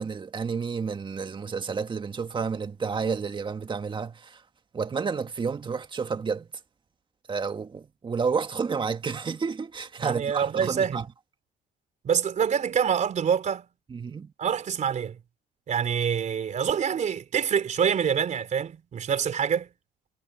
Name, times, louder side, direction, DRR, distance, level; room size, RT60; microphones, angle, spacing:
voice 1, 0.0-4.4 4.7-6.5 7.3-11.1 13.9-14.3, right 5 dB, 30° right, 1.9 m, -30 dB
voice 2, 10.0-11.0 12.0-13.7 14.4-15.2 15.7-19.7, right 7 dB, 45° right, 3.8 m, -26 dB
cardioid pair, 110°, 17 cm